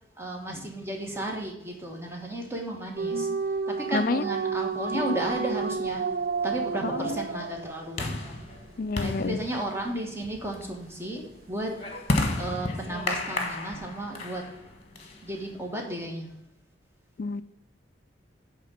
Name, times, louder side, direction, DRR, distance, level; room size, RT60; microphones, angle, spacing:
voice 1, 0.2-3.3 3.7-6.1 6.4-8.4 9.0-11.7 12.3-14.5 15.2-16.3, right 1 dB, 15° right, 1 dB, 1.4 m, -34 dB
sound 1, 3.0-8.2, right 5 dB, 50° right, 0.4 m, -30 dB
voice 2, 3.9-4.2 5.1-5.2 6.8-7.1 8.8-9.4 17.2-17.4, left 4 dB, 50° left, 14 dB, 0.4 m, -28 dB
sound 2, 5.3-15.7, left 2 dB, 35° left, 1.3 m, -34 dB
9.3 x 3.7 x 7.1 m, 0.86 s
head